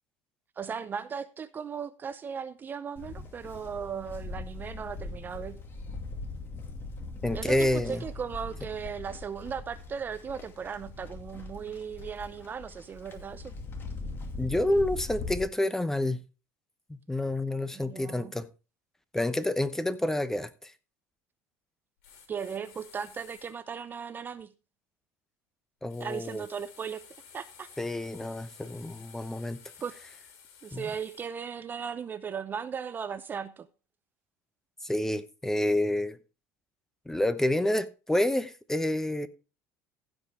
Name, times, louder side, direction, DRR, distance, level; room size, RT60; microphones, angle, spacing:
voice 1, 0.6-5.6 7.3-13.5 17.7-18.3 22.3-24.5 26.0-27.0 27.3-27.7 29.8-29.9 30.6-33.7, right 7 dB, 25° right, 0.6 m, -37 dB
Livestock farm animals working animals, 3.0-15.4, left 3 dB, 30° left, 2.3 m, -41 dB
voice 2, 7.2-8.0 14.4-16.2 16.9-18.5 19.1-20.7 25.8-26.4 27.8-29.6 30.7-30.9 34.8-36.2 37.1-39.3, left 1 dB, 5° left, 0.8 m, -28 dB
sound 1, 22.0-23.5 25.9-31.3, left 7 dB, 80° left, 3.7 m, -53 dB
15.5 x 5.4 x 4.3 m
supercardioid pair, 125°, 7 cm